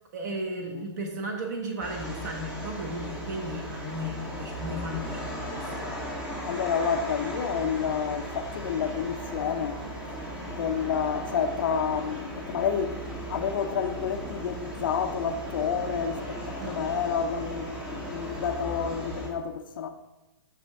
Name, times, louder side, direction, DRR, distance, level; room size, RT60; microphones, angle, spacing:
voice 1, 0.1-6.0 16.6-16.8, right 1 dB, 40° right, 1.0 m, -35 dB
sound 1, 1.8-19.3, equal, 5° right, 0.8 m, -37 dB
voice 2, 6.4-9.8 10.4-13.0 13.3-19.9, left 7 dB, 45° left, 0.4 m, -29 dB
6.1 x 5.1 x 3.3 m
hypercardioid pair, 170°, 15 cm